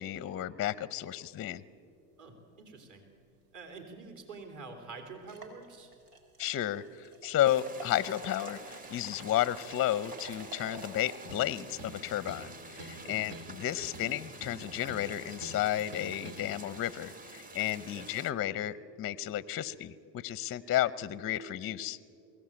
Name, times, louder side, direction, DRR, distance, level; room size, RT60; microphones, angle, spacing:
voice 1, 0.0-1.6 6.4-22.0, left 12 dB, 30° left, 18 dB, 0.6 m, -32 dB
voice 2, 2.2-3.1 3.5-5.9 13.0-13.2 17.9-18.1, right 4 dB, 40° right, 3 dB, 3.6 m, -47 dB
sound 1, 4.4-4.5 5.1-17.9, right 2 dB, 80° right, 3.9 m, -52 dB
sound 2, 7.4-18.3, right 2 dB, 20° right, 1.3 m, -49 dB
sound 3, 11.3-11.5 11.8-12.5 12.8-13.0 13.3-13.6 13.9-15.1 15.4-15.6 15.9-16.4, right 2 dB, 65° right, 4.1 m, -46 dB
23.0 x 16.5 x 8.8 m, 2.5 s
hypercardioid pair, 90°, 46 cm